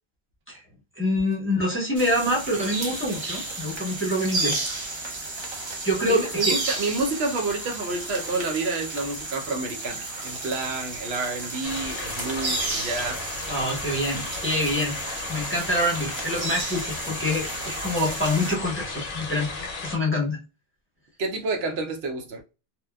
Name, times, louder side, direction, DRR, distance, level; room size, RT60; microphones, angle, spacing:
voice 1, 1.0-4.6 5.8-6.6 13.5-15.0 15.3-19.5 19.8-20.4, left 1 dB, 15° left, 0.6 m, -26 dB
sound 1, 2.0-18.6, right 2 dB, 35° right, 0.5 m, -32 dB
voice 2, 6.1-13.4 21.2-22.4, right 3 dB, 80° right, 0.9 m, -29 dB
sound 2, 11.6-20.0, left 3 dB, 60° left, 0.7 m, -35 dB
2.9 x 2.2 x 2.2 m
omnidirectional pair, 1.0 m